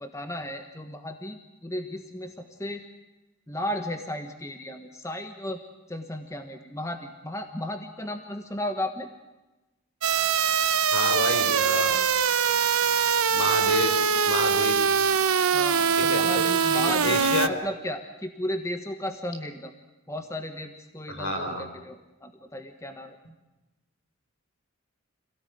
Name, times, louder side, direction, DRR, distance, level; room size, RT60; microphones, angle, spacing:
voice 1, 0.0-2.8 3.5-5.6 5.9-9.1 15.5-19.7 20.1-23.2, left 1 dB, 15° left, 6 dB, 1.4 m, -34 dB
sound 1, 10.0-17.5, right 7 dB, 90° right, 1.0 m, -23 dB
voice 2, 10.9-12.0 13.3-14.8 16.0-16.3 16.7-17.5 21.1-21.7, left 1 dB, 75° left, 6 dB, 4.5 m, -29 dB
26.5 x 17.5 x 9.3 m, 1.1 s
head